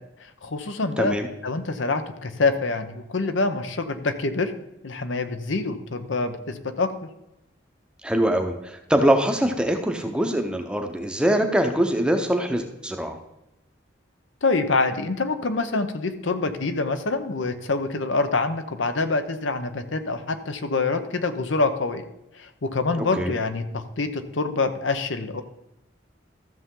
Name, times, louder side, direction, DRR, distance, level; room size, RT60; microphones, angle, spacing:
voice 1, 0.4-1.2 1.4-4.5 4.8-6.9 14.4-22.0 22.3-25.4, left 3 dB, 80° left, 9 dB, 0.9 m, -26 dB
voice 2, 1.0-1.3 8.0-13.2 23.2-23.3, right 1 dB, 5° right, 4 dB, 0.7 m, -23 dB
13.5 x 6.8 x 3.8 m, 0.87 s
head